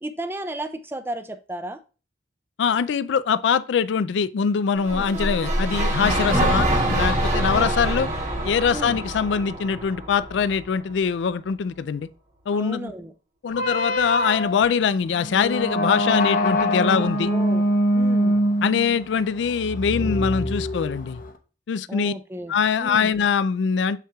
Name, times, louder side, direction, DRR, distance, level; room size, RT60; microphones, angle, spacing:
voice 1, 0.0-1.8 4.9-5.1 7.5-8.1 8.7-9.0 12.5-13.1 16.8-17.6 17.9-18.4 21.9-22.5 22.8-23.1, right 1 dB, 15° right, 0.4 m, -33 dB
voice 2, 2.6-8.1 8.4-12.1 12.5-12.9 13.4-17.3 18.6-21.2 21.7-22.1 22.5-24.0, left 6 dB, 90° left, 0.4 m, -23 dB
sound 1, 4.8-11.0, right 1 dB, 45° right, 1.4 m, -25 dB
sound 2, 13.5-21.3, equal, 50° left, 0.8 m, -24 dB
7.3 x 5.6 x 2.3 m
head